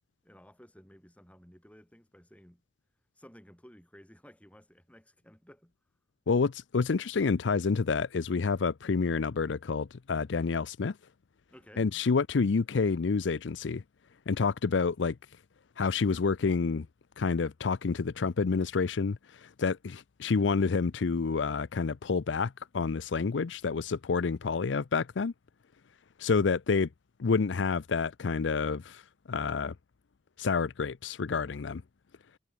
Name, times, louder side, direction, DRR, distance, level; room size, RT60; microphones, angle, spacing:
voice 1, 0.2-2.6 3.2-5.7 11.5-11.9, equal, 5° left, 4.6 m, -55 dB
voice 2, 6.3-10.9 11.8-13.8 14.3-15.2 15.8-16.9 17.2-25.3 26.2-26.9 27.2-29.0 29.3-29.7 30.4-31.8, left 4 dB, 75° left, 0.5 m, -28 dB
head